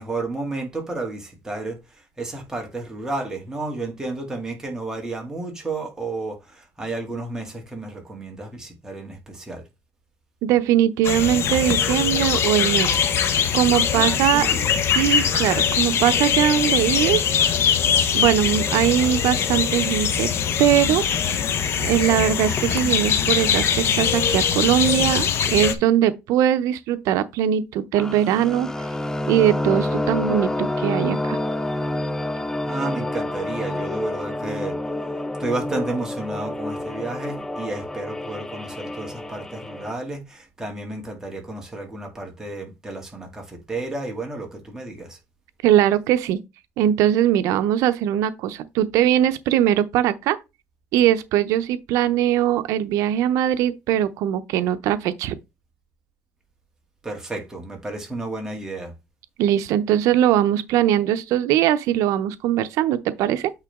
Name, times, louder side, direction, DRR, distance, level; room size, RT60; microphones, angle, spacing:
voice 1, 0.0-9.6 13.9-14.7 18.8-19.1 32.6-34.8 35.4-45.2 57.0-58.9, right 2 dB, 10° right, 2.4 m, -32 dB
voice 2, 10.4-12.9 13.5-14.5 14.9-17.3 18.1-20.3 20.6-21.0 21.8-28.7 29.3-31.4 45.6-46.4 46.8-50.4 50.9-55.3 59.4-63.5, right 11 dB, 85° right, 0.6 m, -21 dB
sound 1, 11.0-25.8, left 8 dB, 50° left, 1.0 m, -22 dB
sound 2, 28.0-39.9, left 1 dB, 10° left, 0.5 m, -28 dB
8.9 x 3.8 x 3.6 m
cardioid pair, 135°, 5 cm